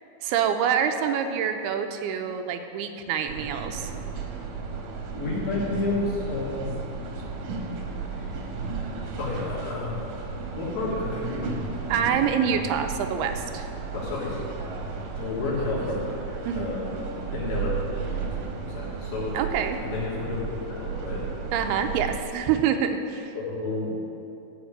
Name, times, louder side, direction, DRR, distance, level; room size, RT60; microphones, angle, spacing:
voice 1, 0.2-3.9 11.9-13.7 16.5-16.7 19.3-19.8 21.5-23.4, right 8 dB, 90° right, 6 dB, 2.7 m, -26 dB
sound 1, 3.3-22.2, right 5 dB, 60° right, 2.1 m, -34 dB
voice 2, 5.1-6.7 8.1-8.3 9.2-10.1 10.6-11.6 13.9-14.4 15.2-16.9 17.3-17.7 18.0-18.4 18.6-19.4 19.8-21.3 23.3-24.1, left 3 dB, 65° left, -6 dB, 4.5 m, -31 dB
14.5 x 5.2 x 8.7 m, 2.8 s
omnidirectional pair, 4.5 m